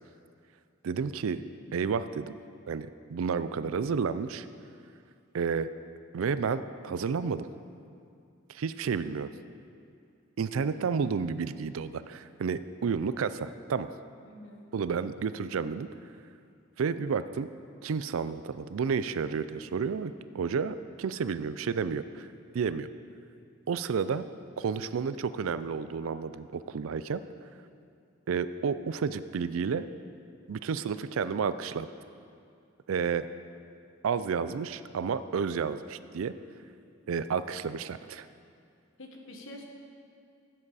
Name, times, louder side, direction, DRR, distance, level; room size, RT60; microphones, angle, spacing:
voice 1, 0.8-1.4 1.7-2.4 2.7-4.5 5.3-5.7 6.1-7.5 8.5-9.3 10.4-13.9 14.7-15.9 16.8-17.5 17.8-22.3 22.5-22.9 23.7-24.2 24.6-27.2 28.3-29.9 30.5-31.9 32.9-33.3 34.0-36.3 37.1-38.3, right 6 dB, 75° right, 13 dB, 0.4 m, -31 dB
voice 2, 14.3-14.6 39.0-39.6, left 1 dB, 65° left, 1 dB, 1.3 m, -46 dB
14.5 x 7.6 x 4.1 m, 2.4 s
head